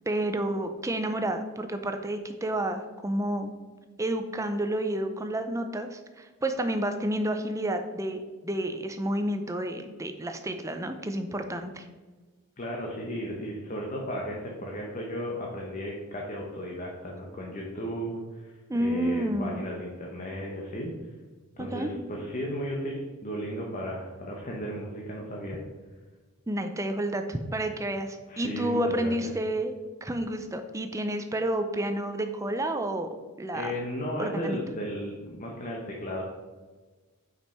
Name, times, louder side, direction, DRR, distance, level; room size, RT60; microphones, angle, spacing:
voice 1, 0.1-3.5 4.0-11.8 18.7-19.6 21.6-21.9 26.5-29.7 30.0-33.1 33.4-33.7 34.2-34.6, right 1 dB, 15° right, 7 dB, 0.5 m, -30 dB
voice 2, 12.6-18.5 18.8-20.9 21.6-25.6 28.3-29.3 33.5-36.2, equal, 35° left, -2 dB, 0.9 m, -35 dB
5.8 x 5.3 x 4.3 m, 1.3 s
head